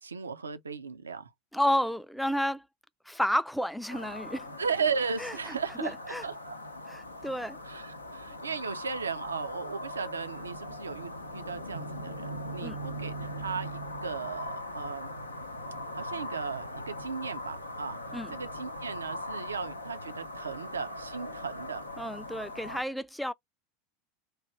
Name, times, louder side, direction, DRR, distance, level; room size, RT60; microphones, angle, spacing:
voice 1, 0.0-1.3 4.6-6.6 7.7-15.1 15.9-18.0 18.3-21.9, right 5 dB, 80° right, 0.4 m, -36 dB
voice 2, 1.5-2.6 3.1-4.5 5.2-6.2 6.9-7.6 12.6-12.8 18.1-18.3 22.0-23.3, equal, ahead, 0.3 m, -31 dB
sound 1, 3.9-22.8, left 1 dB, 90° left, 0.5 m, -40 dB
3.2 x 2.2 x 4.0 m
figure-of-eight pair, 80°, 0 cm